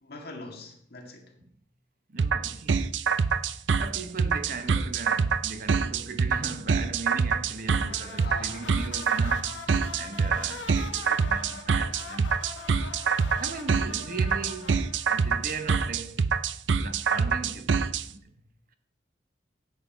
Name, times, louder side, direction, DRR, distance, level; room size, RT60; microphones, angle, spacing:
voice 1, 0.0-1.3 8.2-8.7, left 2 dB, 60° left, 1.9 m, -42 dB
voice 2, 2.1-2.8 3.8-9.6 9.9-12.4 13.4-14.8 15.1-16.3 16.7-18.3, right 4 dB, 50° right, 0.9 m, -38 dB
sound 1, 2.2-18.0, right 5 dB, 80° right, 0.5 m, -25 dB
sound 2, 7.7-16.1, left 4 dB, 80° left, 1.1 m, -43 dB
9.9 x 7.7 x 4.5 m
head